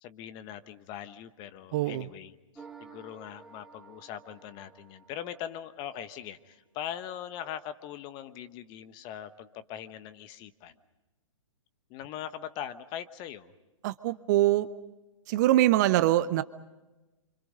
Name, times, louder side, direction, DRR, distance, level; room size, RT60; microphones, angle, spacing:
voice 1, 0.0-10.7 11.9-13.5, left 10 dB, 25° left, 13 dB, 1.2 m, -41 dB
voice 2, 1.7-2.1 13.8-14.7 15.3-16.4, right 15 dB, 35° right, 14 dB, 0.8 m, -23 dB
sound 1, 2.5-5.9, right 5 dB, 5° right, 2.0 m, -52 dB
29.0 x 26.0 x 5.4 m, 1.1 s
figure-of-eight pair, 120°, 17 cm